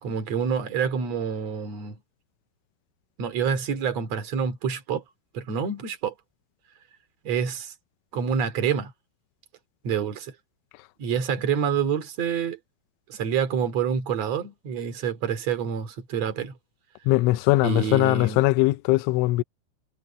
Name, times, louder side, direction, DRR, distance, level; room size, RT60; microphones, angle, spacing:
voice 1, 0.0-2.0 3.2-5.0 5.3-6.1 7.2-7.7 8.1-8.9 9.8-10.3 11.0-12.6 13.1-16.5 17.6-18.4, right 7 dB, 40° right, 3.0 m, -27 dB
voice 2, 17.1-19.4, left 19 dB, 80° left, 3.1 m, -21 dB
omnidirectional pair, 5.6 m